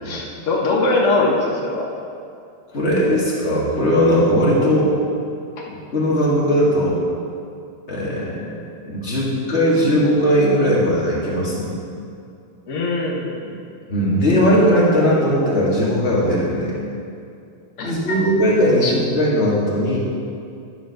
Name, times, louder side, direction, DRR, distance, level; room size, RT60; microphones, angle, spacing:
voice 1, 0.0-1.8 12.7-13.5 17.8-18.2 18.8-18.9, left 2 dB, 60° left, -3 dB, 0.7 m, -21 dB
voice 2, 2.7-4.9 5.7-7.0 7.9-11.7 13.9-16.8 17.8-20.0, equal, 25° left, -6 dB, 1.7 m, -18 dB
12.0 x 5.1 x 6.4 m, 2.5 s
omnidirectional pair, 3.4 m